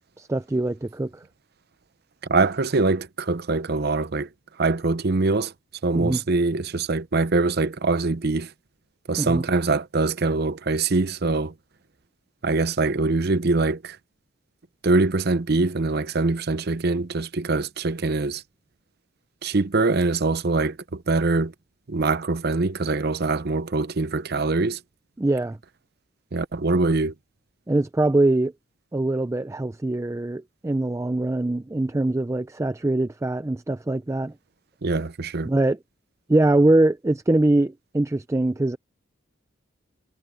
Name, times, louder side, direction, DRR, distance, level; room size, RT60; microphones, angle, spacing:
voice 1, 0.2-1.2 5.9-6.2 9.2-9.4 25.2-25.6 27.7-28.5 28.9-34.3 35.5-35.8 36.3-38.8, right 2 dB, 15° right, 0.4 m, -23 dB
voice 2, 2.3-4.3 4.6-5.5 5.8-8.5 9.1-11.5 12.4-14.0 14.8-18.4 19.4-21.5 21.9-24.8 26.3-27.1 34.8-35.5, right 3 dB, 55° right, 0.7 m, -23 dB
head